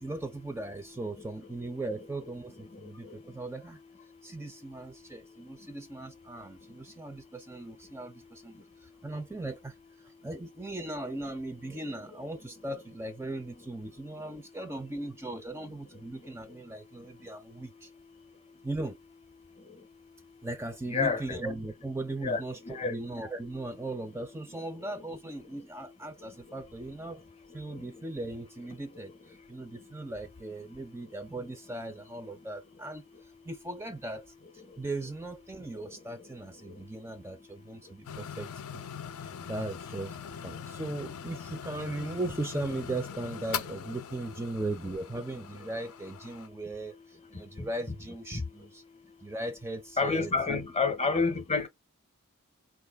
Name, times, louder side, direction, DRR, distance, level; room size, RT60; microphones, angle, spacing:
voice 1, 0.0-3.8 4.2-17.9 18.6-19.0 20.4-27.2 27.5-33.0 33.4-38.8 39.2-40.2 40.4-48.8 49.2-50.6, right 2 dB, 10° right, 0.4 m, -38 dB
voice 2, 20.9-21.4 22.2-22.9 47.6-47.7 48.3-48.4 50.0-51.7, left 4 dB, 30° left, 0.6 m, -29 dB
sound 1, 38.1-46.5, left 7 dB, 70° left, 0.5 m, -41 dB
4.3 x 2.4 x 3.4 m
head